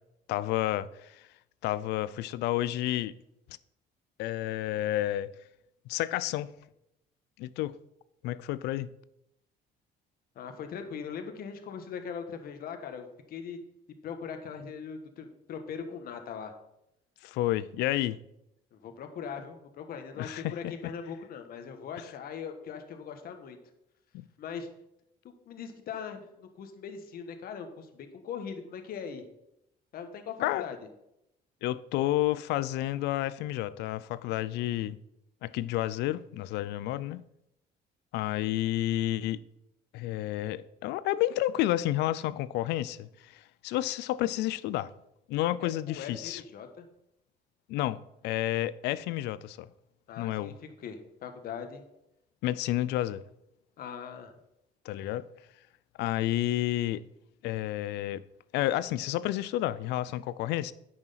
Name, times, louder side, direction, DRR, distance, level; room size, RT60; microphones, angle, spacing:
voice 1, 0.3-1.3 1.6-3.1 4.2-5.3 5.9-6.5 7.4-7.7 8.2-8.9 17.2-18.2 20.2-20.5 20.8-20.9 24.1-24.2 30.4-30.7 31.6-35.0 35.4-37.2 38.1-39.4 39.9-44.9 45.3-46.4 47.7-49.7 50.2-50.5 52.4-53.2 54.8-55.3 56.0-57.0 57.4-58.2 58.5-60.7, left 14 dB, 85° left, 0.5 m, -30 dB
voice 2, 10.3-13.6 14.0-16.5 18.7-23.6 24.4-24.7 25.2-29.2 29.9-30.8 45.6-46.9 50.1-51.8 53.8-54.3, left 6 dB, 60° left, 1.5 m, -40 dB
8.9 x 6.3 x 5.8 m
cardioid pair, 110°, 17 cm